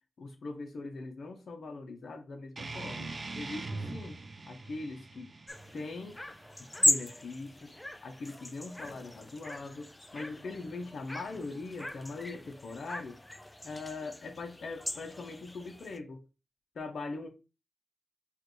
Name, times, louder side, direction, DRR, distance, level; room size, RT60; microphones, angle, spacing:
voice 1, 0.2-4.2 4.5-5.3 5.7-6.2 6.8-7.7 8.0-13.2 13.6-16.2 16.7-17.3, left 3 dB, 80° left, 0.7 m, -41 dB
sound 1, 2.6-7.6, right 3 dB, 50° right, 0.5 m, -43 dB
sound 2, 5.5-16.0, left 1 dB, 20° left, 0.4 m, -37 dB
5.0 x 2.5 x 3.0 m
cardioid pair, 55°, 0 cm